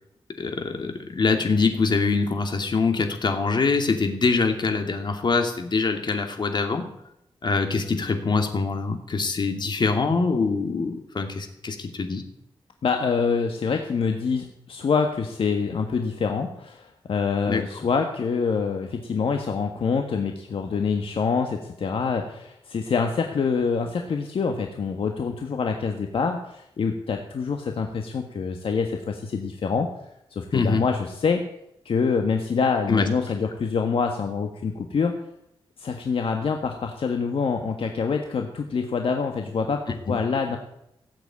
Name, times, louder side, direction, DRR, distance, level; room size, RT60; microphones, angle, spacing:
voice 1, 0.4-6.9 7.4-12.2 17.5-17.6 30.5-30.9 32.9-33.1 40.1-40.2, left 4 dB, 50° left, 5 dB, 2.6 m, -24 dB
voice 2, 12.8-29.9 30.3-31.4 31.8-35.1 35.8-39.8 40.1-40.6, left 5 dB, 65° left, 3 dB, 1.6 m, -26 dB
17.5 x 8.2 x 8.7 m, 0.81 s
wide cardioid pair, 105°, 10 cm